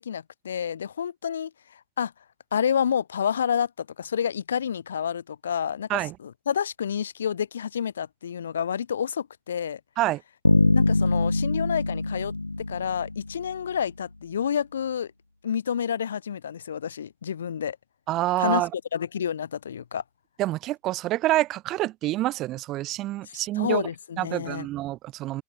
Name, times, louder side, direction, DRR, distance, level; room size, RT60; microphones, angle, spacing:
voice 1, 0.0-2.1 2.5-9.8 10.7-12.3 12.7-15.1 15.4-17.8 18.4-18.6 18.9-20.0 23.2-24.7, left 8 dB, 65° left, 4.8 m, -29 dB
Bass guitar, 10.4-13.5, left 2 dB, 85° left, 2.3 m, -23 dB
voice 2, 18.1-18.7 20.4-23.8 24.2-25.4, right 16 dB, 35° right, 2.2 m, -27 dB
open air
figure-of-eight pair, 90°, 0 cm